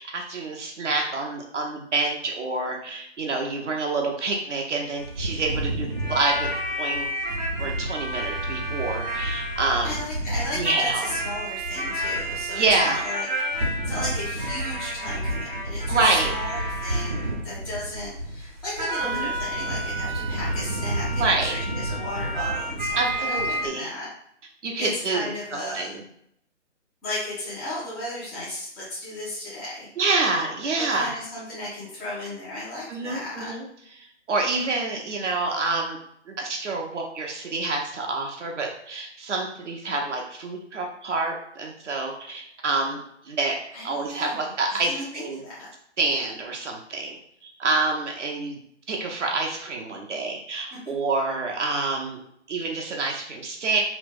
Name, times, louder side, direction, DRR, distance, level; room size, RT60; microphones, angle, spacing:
voice 1, 0.0-6.5 6.8-7.1 7.6-10.0 10.5-11.1 12.6-13.0 15.9-16.3 19.0-19.3 21.1-21.6 23.0-23.9 24.6-26.0 30.0-31.1 32.9-33.7 34.3-36.0 36.3-43.6 43.8-45.4 46.0-47.2 47.4-48.6 48.9-52.2 52.5-53.8, right 3 dB, 75° right, 0 dB, 0.7 m, -27 dB
sound 1, 5.0-23.7, right 1 dB, 40° right, 0.7 m, -29 dB
voice 2, 9.8-24.1 24.8-26.0 27.0-29.9 30.8-33.5 43.7-44.5 44.9-45.7, left 1 dB, ahead, -10 dB, 0.4 m, -35 dB
2.8 x 2.0 x 3.3 m, 0.72 s
hypercardioid pair, 160°, 36 cm